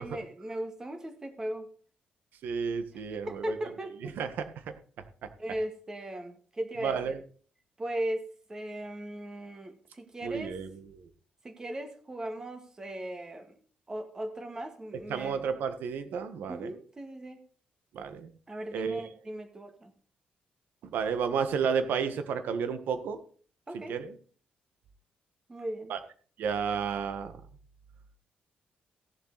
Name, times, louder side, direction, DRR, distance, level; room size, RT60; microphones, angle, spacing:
voice 1, 0.0-1.7 2.9-4.2 5.4-7.1 7.8-8.2 8.5-10.6 11.4-13.6 13.9-15.4 16.5-17.4 18.5-19.9 23.7-24.0 25.5-25.9, right 1 dB, 20° right, 6 dB, 1.9 m, -38 dB
voice 2, 2.4-3.6 4.0-4.5 6.8-7.2 10.2-10.8 15.1-16.7 17.9-18.3 18.7-19.0 20.8-23.2 23.9-24.1 25.9-26.0 26.4-27.4, right 6 dB, 85° right, 9 dB, 1.6 m, -31 dB
16.0 x 7.5 x 4.1 m, 0.44 s
cardioid pair, 145°, 3 cm